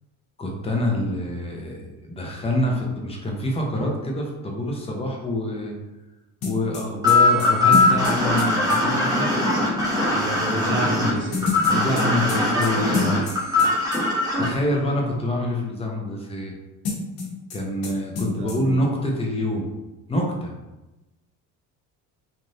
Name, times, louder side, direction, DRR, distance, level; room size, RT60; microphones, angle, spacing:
voice 1, 0.4-5.7 6.4-9.6 11.7-13.3 14.4-16.5 17.5-19.7 20.1-20.5, left 1 dB, 15° left, -1 dB, 0.7 m, -26 dB
sound 1, 6.4-8.8 11.3-13.7 13.9-14.0 16.8-17.6 17.8-17.9 18.2-18.6, left 5 dB, 85° left, 1.0 m, -28 dB
sound 2, 7.0-14.5, left 2 dB, 10° right, 1.1 m, -20 dB
voice 2, 10.1-11.5 18.2-18.8, right 1 dB, 30° right, 0 dB, 0.7 m, -30 dB
3.2 x 2.5 x 2.6 m, 1.0 s
cardioid pair, 110°, 36 cm